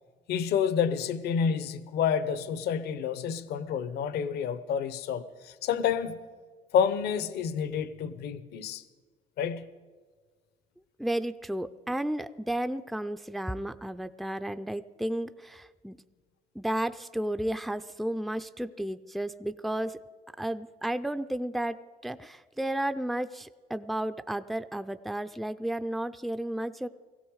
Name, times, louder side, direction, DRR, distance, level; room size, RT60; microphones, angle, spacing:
voice 1, 0.3-6.2 6.7-8.8 9.4-9.7, left 7 dB, 75° left, 14 dB, 0.9 m, -29 dB
voice 2, 11.0-16.0 16.5-20.0 20.4-26.9, right 1 dB, ahead, 11 dB, 0.4 m, -33 dB
18.0 x 16.0 x 4.8 m, 1.5 s
cardioid pair, 110°, 17 cm